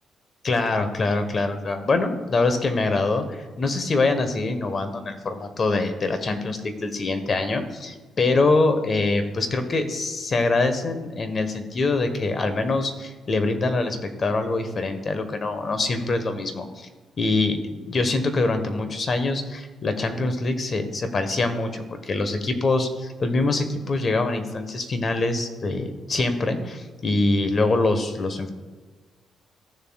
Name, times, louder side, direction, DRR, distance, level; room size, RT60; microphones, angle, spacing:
voice 1, 0.4-16.9 17.2-28.5, left 3 dB, 40° left, 8 dB, 1.2 m, -24 dB
15.0 x 7.1 x 2.3 m, 1.4 s
cardioid pair, 90°, 0 cm